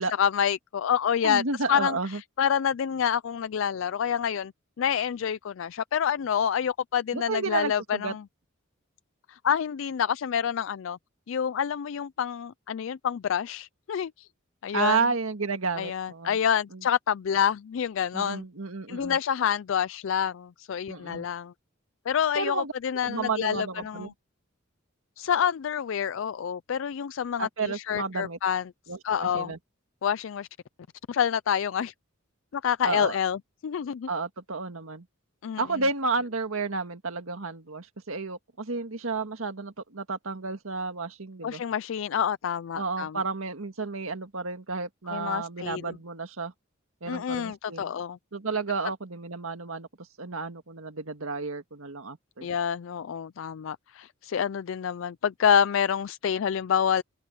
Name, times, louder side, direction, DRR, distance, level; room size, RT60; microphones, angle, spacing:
voice 1, 0.2-1.4 1.7-2.0 2.4-4.5 4.8-8.2 9.3-11.0 11.3-14.3 14.6-15.0 15.8-18.4 18.9-21.5 22.1-24.1 25.2-28.6 29.0-29.5 30.0-30.5 31.1-31.9 32.5-34.1 35.4-35.6 41.4-43.2 45.1-45.9 47.1-48.2 52.4-57.0, left 8 dB, 70° left, 0.4 m, -27 dB
voice 2, 1.2-2.2 7.1-8.1 14.7-16.4 16.7-16.8 18.1-19.2 20.9-21.3 22.4-22.7 23.0-24.1 27.4-28.4 28.9-29.6 32.8-33.2 34.1-35.1 35.6-41.6 42.8-46.5 47.0-47.9 48.3-49.9 50.2-52.5, right 4 dB, 90° right, 1.8 m, -31 dB
head